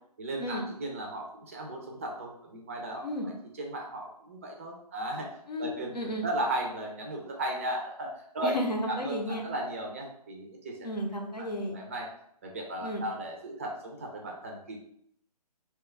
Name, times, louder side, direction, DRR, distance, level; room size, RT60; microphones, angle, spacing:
voice 1, 0.2-6.0 6.2-8.5 8.9-10.8 11.7-12.1 12.4-14.8, right 1 dB, 20° right, 1 dB, 0.3 m, -36 dB
voice 2, 5.5-6.3 8.4-9.5 10.8-11.8 12.8-13.1, equal, 90° left, 1 dB, 0.8 m, -33 dB
2.9 x 2.2 x 3.3 m, 0.70 s
figure-of-eight pair, 140°, 21 cm